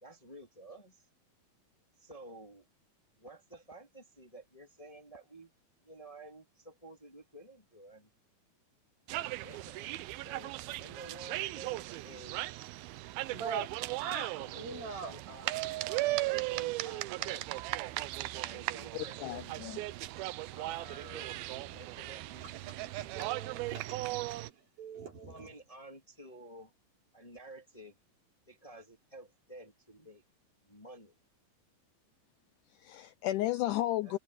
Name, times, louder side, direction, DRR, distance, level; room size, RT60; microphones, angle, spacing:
voice 1, 0.0-1.1 2.0-2.6 3.2-5.5 5.8-8.1 9.4-12.7 14.2-15.6 15.9-17.7 18.3-19.6 20.5-21.3 21.7-22.8 25.3-26.7 27.1-28.0 28.5-30.2 30.6-31.1 34.0-34.2, right 1 dB, 10° left, 2.0 m, -51 dB
sound 1, 9.1-24.5, right 18 dB, 90° right, 2.6 m, -37 dB
voice 2, 13.3-13.7 14.0-15.1 20.2-20.4 21.3-21.9 22.8-24.1 24.4-25.5, right 5 dB, 70° right, 5.8 m, -43 dB
voice 3, 18.9-19.8 32.7-34.2, left 15 dB, 85° left, 1.8 m, -34 dB
omnidirectional pair, 4.3 m